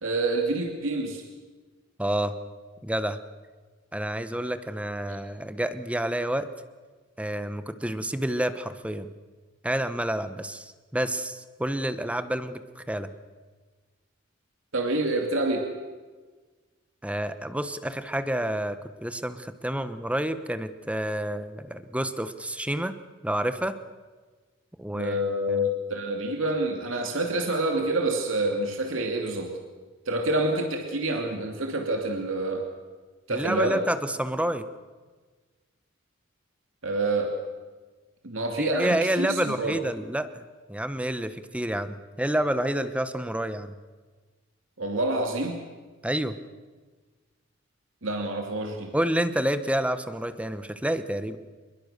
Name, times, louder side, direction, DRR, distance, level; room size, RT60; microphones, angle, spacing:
voice 1, 0.0-1.2 14.7-15.7 24.9-29.6 30.1-32.6 33.3-33.8 36.8-37.3 38.2-39.8 44.8-45.6 48.0-48.9, right 2 dB, 75° right, 2 dB, 2.7 m, -27 dB
voice 2, 2.0-2.3 2.8-3.2 3.9-6.5 7.2-9.1 9.6-13.1 17.0-22.9 23.2-23.8 24.8-25.2 25.5-25.7 33.3-34.6 38.6-40.4 40.7-43.7 46.0-46.4 48.9-51.4, right 1 dB, 5° right, 11 dB, 1.1 m, -29 dB
27.0 x 22.0 x 6.8 m, 1.4 s
head